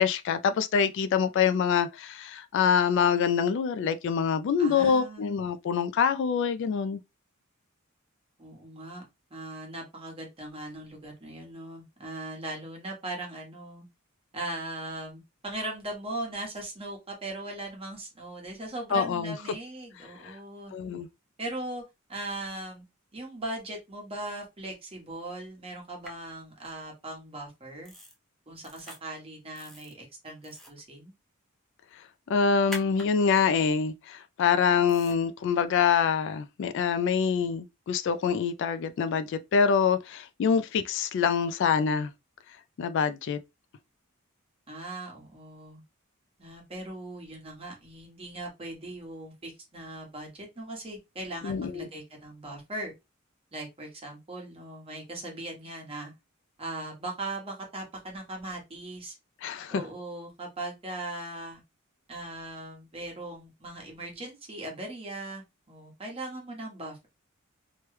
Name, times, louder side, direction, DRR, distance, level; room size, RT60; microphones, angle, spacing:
voice 1, 0.0-7.0 18.9-19.3 20.2-20.4 20.7-21.1 32.3-42.1 42.8-43.4 51.4-51.9 59.4-59.8, left 6 dB, 60° left, 0.3 m, -25 dB
voice 2, 4.6-5.3 8.4-9.0 9.3-13.9 14.3-20.7 21.4-21.8 22.1-22.8 23.1-27.9 28.5-31.1 44.7-45.8 46.4-52.9 53.5-56.1 56.6-59.2 59.7-61.6 62.1-67.1, right 2 dB, 25° right, 1.1 m, -39 dB
sound 1, 26.0-26.1 27.8-28.1 28.6-29.0 29.5-29.9 30.4-30.8 32.7-33.1 34.9-35.1, left 1 dB, ahead, 0.6 m, -43 dB
3.0 x 2.2 x 3.1 m
head